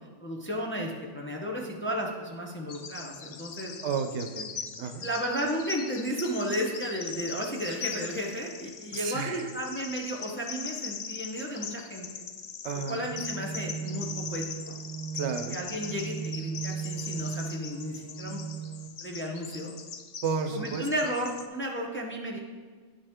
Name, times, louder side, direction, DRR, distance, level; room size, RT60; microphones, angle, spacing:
voice 1, 0.2-3.8 5.0-12.2 12.9-14.7 15.5-18.4 19.0-19.7 20.5-22.4, equal, 10° left, -1 dB, 0.7 m, -33 dB
Bird vocalization bird call bird song, 2.7-21.5, left 6 dB, 60° left, 0.4 m, -41 dB
voice 2, 3.8-5.1 8.9-9.5 12.6-13.1 15.1-15.6 20.2-20.9, right 6 dB, 75° right, 7 dB, 0.9 m, -32 dB
sound 1, 12.9-18.9, right 7 dB, 45° right, 0.7 m, -37 dB
10.0 x 5.5 x 3.6 m, 1.5 s
omnidirectional pair, 1.2 m